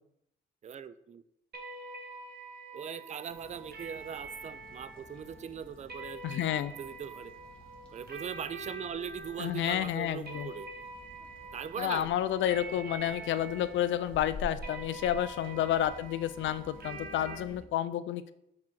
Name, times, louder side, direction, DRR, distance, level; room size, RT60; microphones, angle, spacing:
voice 1, 0.6-1.2 2.7-7.3 7.9-10.7 11.5-12.2 17.6-17.7, right 7 dB, 35° right, 14 dB, 0.4 m, -40 dB
sound 1, 1.5-17.4, right 2 dB, 55° right, 1.3 m, -46 dB
sound 2, 3.3-17.6, left 1 dB, 5° left, 1.8 m, -50 dB
voice 2, 6.2-6.7 9.4-10.5 11.8-18.3, left 11 dB, 70° left, 13 dB, 0.5 m, -30 dB
6.1 x 4.8 x 4.5 m, 0.80 s
cardioid pair, 90°, 20 cm